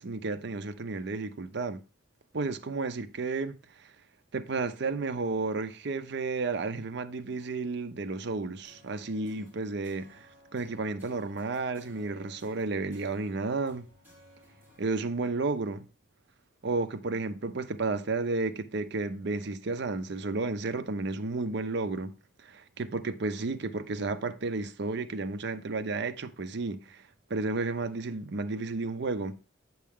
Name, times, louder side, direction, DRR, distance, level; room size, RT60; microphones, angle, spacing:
voice 1, 0.0-1.8 2.3-3.6 4.3-10.3 10.5-13.9 14.8-15.9 16.6-22.1 22.4-27.0 27.3-29.4, right 3 dB, 60° right, 0.6 m, -32 dB
sound 1, 8.6-14.8, left 1 dB, 10° right, 5.3 m, -58 dB
8.5 x 5.9 x 3.6 m
head